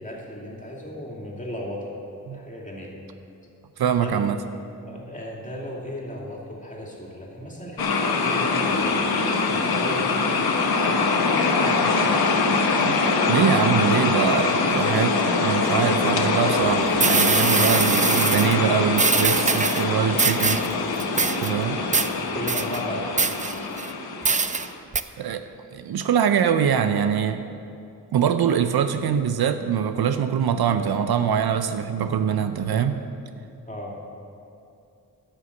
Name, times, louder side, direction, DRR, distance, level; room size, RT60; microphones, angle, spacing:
voice 1, 0.0-2.0 2.3-2.9 4.0-4.2 4.9-12.2 22.3-23.2 33.7-34.0, left 1 dB, 20° left, -3 dB, 2.8 m, -35 dB
voice 2, 3.8-4.4 12.9-13.0 13.3-20.6 21.4-21.8 25.2-25.4 25.7-27.4 28.1-32.9, right 8 dB, 70° right, 9 dB, 0.6 m, -23 dB
sound 1, 7.8-24.8, left 4 dB, 70° left, 1.1 m, -23 dB
sound 2, 16.6-16.7 17.0-18.6 19.0-19.8 20.2-20.7 21.0-21.5 21.9-22.1 22.5-22.8 23.2-23.9 24.2-24.7 24.9-25.0, right 4 dB, 20° right, 0.4 m, -23 dB
11.0 x 6.8 x 7.1 m, 2.6 s
cardioid pair, 50°, 38 cm